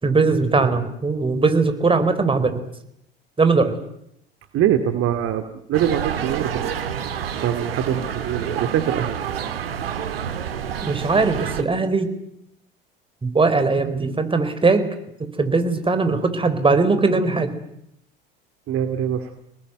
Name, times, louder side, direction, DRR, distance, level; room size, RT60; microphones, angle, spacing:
voice 1, 0.0-2.6 3.4-3.8 10.8-12.1 13.2-14.9 15.2-17.5, right 3 dB, 20° right, 9 dB, 4.4 m, -20 dB
voice 2, 4.5-5.4 5.7-6.7 7.3-9.2 18.7-19.3, right 10 dB, 50° right, 8 dB, 2.4 m, -23 dB
sound 1, 5.7-11.6, right 8 dB, 80° right, 1.9 m, -28 dB
28.5 x 19.5 x 9.4 m, 0.76 s
figure-of-eight pair, 70°, 29 cm